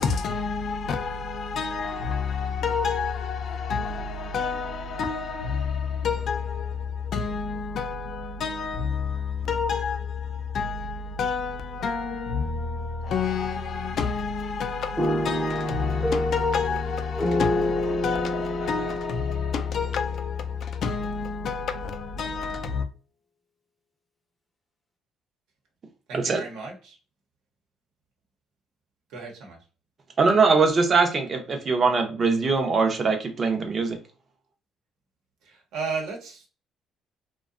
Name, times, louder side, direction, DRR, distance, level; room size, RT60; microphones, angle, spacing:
voice 1, 0.0-22.9, left 5 dB, 60° left, 0.4 m, -29 dB
sound 1, 15.0-21.0, left 1 dB, 15° left, 0.6 m, -29 dB
voice 2, 26.1-27.0 29.1-29.6 35.4-36.5, right 4 dB, 85° right, 0.9 m, -35 dB
voice 3, 30.2-34.0, right 4 dB, 40° right, 0.6 m, -22 dB
2.7 x 2.2 x 2.4 m
cardioid pair, 105°, 0 cm